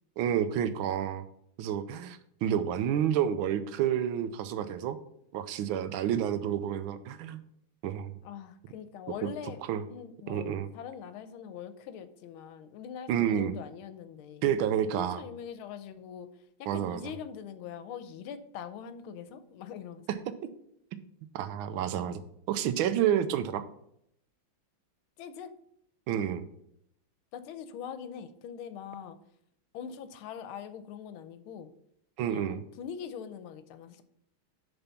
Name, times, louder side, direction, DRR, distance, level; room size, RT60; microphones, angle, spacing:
voice 1, 0.2-1.2 1.6-5.0 5.3-7.4 7.8-8.2 9.7-9.8 10.3-10.7 13.1-13.5 14.4-15.2 16.7-17.0 21.3-22.2 22.5-23.6 26.1-26.4 32.2-32.6, right 9 dB, 80° right, 12 dB, 1.4 m, -29 dB
voice 2, 8.2-9.6 9.9-14.4 14.9-16.3 16.6-20.0 25.2-25.5 27.3-29.2 29.7-31.7 32.2-34.0, left 8 dB, 90° left, 11 dB, 1.5 m, -42 dB
6.9 x 4.0 x 5.7 m, 0.73 s
omnidirectional pair, 2.3 m